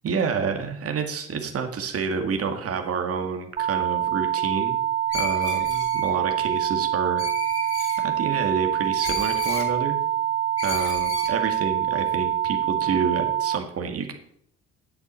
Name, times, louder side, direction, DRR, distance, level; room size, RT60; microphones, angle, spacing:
voice 1, 0.0-4.8 5.1-7.3 8.0-10.0 10.6-14.1, right 5 dB, 50° right, 5 dB, 2.0 m, -28 dB
sound 1, 3.6-13.6, right 11 dB, 30° right, 0.6 m, -25 dB
Screech, 5.1-6.1 7.2-8.0 9.0-9.7 10.6-11.3, left 3 dB, 50° left, 5.2 m, -33 dB
8.3 x 8.3 x 8.1 m, 0.67 s
cardioid pair, 90°, 30 cm